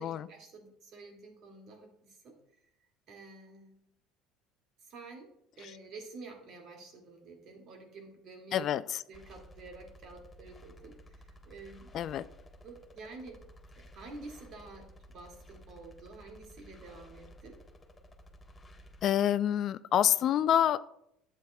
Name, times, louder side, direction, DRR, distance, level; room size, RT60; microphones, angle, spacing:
voice 1, 0.0-2.3 3.1-3.7 4.8-5.3 5.6-8.7 9.1-11.9 12.6-13.4 13.8-17.6, right 3 dB, 55° right, 2 dB, 2.2 m, -49 dB
voice 2, 8.5-9.0 11.9-12.2 19.0-20.8, left 10 dB, 55° left, 15 dB, 0.3 m, -27 dB
sound 1, 9.1-19.1, equal, 20° left, 1.1 m, -54 dB
11.5 x 7.4 x 2.3 m, 0.76 s
hypercardioid pair, 70°, 0 cm